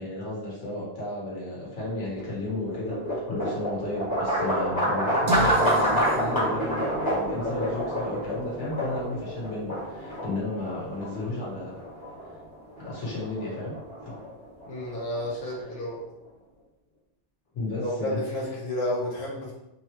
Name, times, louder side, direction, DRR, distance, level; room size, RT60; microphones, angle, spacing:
voice 1, 0.0-11.7 12.8-13.7 14.0-14.1 15.7-15.8 17.5-18.2, left 2 dB, 75° left, -5 dB, 1.5 m, -33 dB
sound 1, 1.8-15.9, equal, 20° left, 1.4 m, -28 dB
sound 2, 5.3-11.2, right 2 dB, 60° right, 0.4 m, -36 dB
voice 2, 14.7-16.0 17.8-19.5, left 1 dB, 50° left, -5 dB, 1.1 m, -31 dB
3.7 x 2.9 x 3.0 m, 0.88 s
omnidirectional pair, 1.2 m